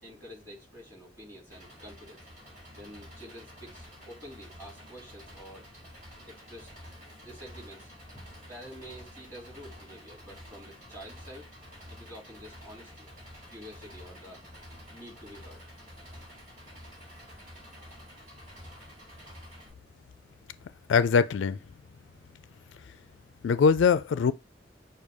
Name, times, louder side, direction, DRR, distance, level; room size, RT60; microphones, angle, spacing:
voice 1, 0.0-2.3 2.8-5.7 6.2-6.7 7.2-11.5 11.9-13.1 13.5-14.4 14.9-15.6, equal, 15° right, 2.5 m, -48 dB
Engine, 1.5-19.7, equal, 45° right, 2.6 m, -49 dB
voice 2, 20.9-21.6 23.4-24.3, left 6 dB, 80° left, 0.3 m, -22 dB
6.3 x 2.3 x 3.4 m
head